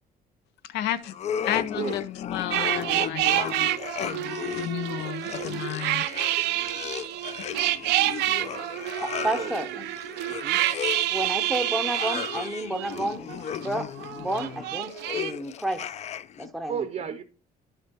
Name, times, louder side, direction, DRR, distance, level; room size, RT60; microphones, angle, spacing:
voice 1, 0.6-1.1 1.4-2.0 2.3-6.0 6.8-6.9, left 11 dB, 90° left, 0.6 m, -33 dB
sound 1, 1.1-16.5, left 9 dB, 40° left, 0.4 m, -35 dB
sound 2, 2.5-13.7 14.0-15.3, right 14 dB, 85° right, 0.5 m, -28 dB
voice 2, 8.4-8.7 9.3-9.8 10.2-10.6 16.7-17.2, right 8 dB, 45° right, 0.6 m, -35 dB
voice 3, 9.2-9.8 11.1-13.3 13.6-13.9 14.2-15.9 16.4-16.8, right 1 dB, ahead, 0.6 m, -30 dB
11.0 x 6.7 x 2.9 m
cardioid pair, 110°, 17 cm